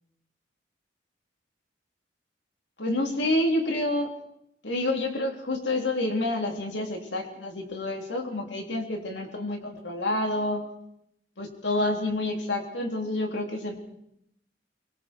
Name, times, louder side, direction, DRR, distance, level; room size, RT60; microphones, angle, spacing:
voice 1, 2.8-4.1 4.6-10.6 11.4-13.8, left 1 dB, 80° left, 2 dB, 3.9 m, -28 dB
24.0 x 23.0 x 4.7 m, 0.76 s
head